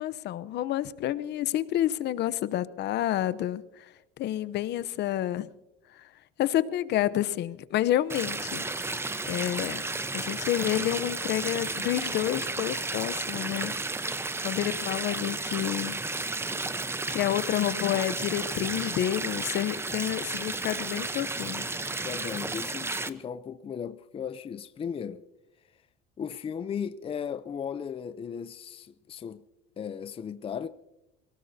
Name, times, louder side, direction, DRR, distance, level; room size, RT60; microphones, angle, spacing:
voice 1, 0.0-3.6 4.2-5.5 6.4-8.7 9.2-9.9 10.1-13.7 14.1-14.2 14.4-16.0 17.1-21.7, left 13 dB, 60° left, 0.8 m, -29 dB
sound 1, 8.1-23.1, right 3 dB, 10° right, 0.8 m, -33 dB
voice 2, 22.0-25.2 26.2-29.4 29.8-30.7, left 7 dB, 30° left, 0.6 m, -36 dB
28.0 x 18.0 x 2.8 m
cardioid pair, 115°, 20 cm